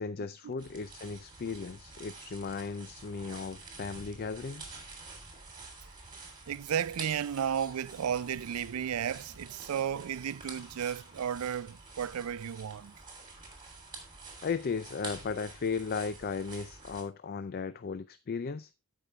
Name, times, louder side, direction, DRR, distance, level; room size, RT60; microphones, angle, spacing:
voice 1, 0.0-4.8 14.4-18.7, left 5 dB, 45° left, 0.4 m, -36 dB
sound 1, 0.6-17.0, right 3 dB, 20° right, 3.2 m, -48 dB
voice 2, 6.5-12.9, right 8 dB, 85° right, 0.4 m, -33 dB
15.5 x 5.4 x 3.2 m
head